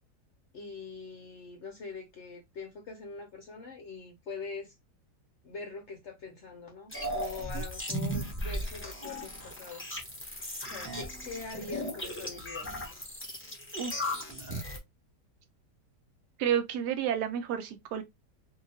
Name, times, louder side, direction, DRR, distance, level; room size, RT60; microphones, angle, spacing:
voice 1, 0.5-4.7 5.4-10.0 10.7-12.7, left 4 dB, 60° left, 0.7 m, -43 dB
sound 1, 6.9-14.8, equal, 15° left, 0.4 m, -37 dB
voice 2, 16.4-18.0, right 9 dB, 80° right, 1.2 m, -30 dB
2.8 x 2.7 x 2.6 m
omnidirectional pair, 1.8 m